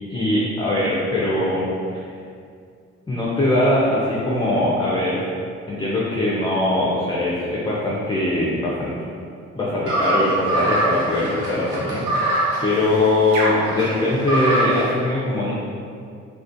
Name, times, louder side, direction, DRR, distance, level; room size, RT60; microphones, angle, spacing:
voice 1, 0.1-1.7 3.1-5.2 5.7-8.9 9.5-12.3 12.6-15.5, left 1 dB, 15° left, -7 dB, 0.3 m, -21 dB
sound 1, 9.9-14.9, right 1 dB, 75° right, 0.7 m, -23 dB
2.3 x 2.2 x 2.5 m, 2.3 s
cardioid pair, 90°, 30 cm